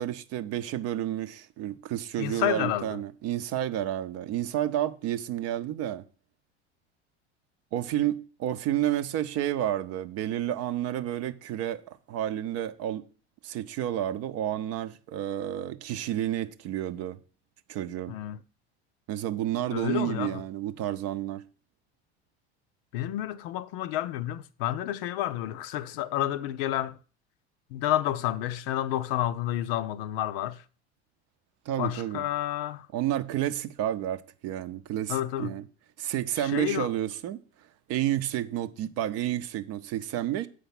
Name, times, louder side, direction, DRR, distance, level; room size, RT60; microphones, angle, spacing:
voice 1, 0.0-6.0 7.7-13.0 13.4-17.2 17.7-18.1 19.1-21.4 31.7-32.2 32.9-35.7 36.0-37.4 37.9-40.5, right 12 dB, 45° right, 0.7 m, -30 dB
voice 2, 2.2-3.0 18.1-18.4 19.7-20.4 22.9-26.9 27.7-30.6 31.8-32.9 35.1-35.5 36.4-36.9, left 13 dB, 60° left, 0.5 m, -30 dB
7.2 x 5.0 x 5.9 m
figure-of-eight pair, 70°, 33 cm